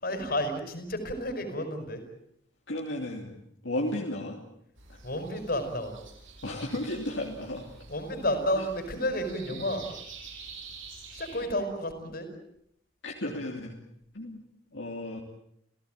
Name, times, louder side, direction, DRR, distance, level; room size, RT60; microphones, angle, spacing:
voice 1, 0.0-2.0 5.0-6.0 7.9-9.8 11.1-12.3, left 1 dB, 50° left, 8 dB, 5.2 m, -31 dB
voice 2, 2.7-3.4 3.6-4.4 4.9-5.0 6.4-7.7 8.6-8.7 9.5-9.6 13.0-13.8 14.1-14.4 14.7-15.2, left 1 dB, 70° left, 0 dB, 3.1 m, -34 dB
sound 1, 4.8-11.5, right 4 dB, 85° right, 7.7 m, -47 dB
30.0 x 16.5 x 9.1 m, 0.75 s
head